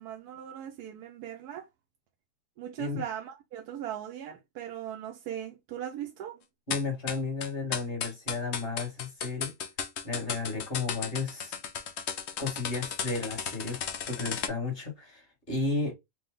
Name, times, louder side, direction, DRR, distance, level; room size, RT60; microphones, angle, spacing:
voice 1, 0.0-1.7 2.6-6.4, right 10 dB, 80° right, 1.1 m, -39 dB
sound 1, 6.7-14.5, left 7 dB, 60° left, 0.7 m, -35 dB
voice 2, 6.7-9.5 10.0-11.6 12.4-13.8 14.1-15.9, left 3 dB, 35° left, 2.0 m, -33 dB
4.4 x 2.3 x 3.7 m
omnidirectional pair, 1.7 m